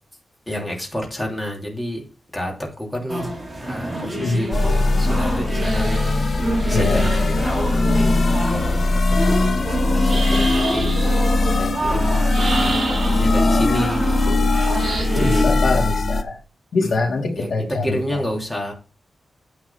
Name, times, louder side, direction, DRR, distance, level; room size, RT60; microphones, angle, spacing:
voice 1, 0.5-3.3 3.6-8.2 8.5-14.5 15.1-15.5 16.8-16.9 17.3-18.7, equal, 10° left, 2.9 m, -30 dB
sound 1, 3.1-15.4, right 1 dB, 20° right, 2.5 m, -27 dB
sound 2, 4.5-16.2, left 2 dB, 50° left, 0.9 m, -20 dB
sound 3, 5.6-7.4 10.0-11.2 12.3-13.4 14.8-15.1, right 4 dB, 45° right, 2.1 m, -30 dB
voice 2, 6.7-7.0 15.1-16.4 16.7-18.2, left 3 dB, 75° left, 2.8 m, -23 dB
9.1 x 4.7 x 5.8 m
wide cardioid pair, 140°, 0 cm